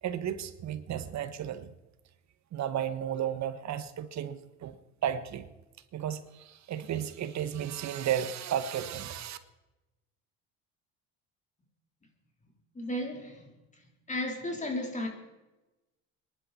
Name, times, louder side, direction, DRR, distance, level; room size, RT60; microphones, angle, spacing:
voice 1, 0.0-1.7 2.5-4.8 5.0-5.5 5.9-9.4, right 10 dB, 55° right, 1.4 m, -33 dB
voice 2, 12.8-13.4 14.1-15.1, left 1 dB, 20° left, 3.9 m, -33 dB
25.0 x 11.0 x 4.3 m
supercardioid pair, 100°, 34 cm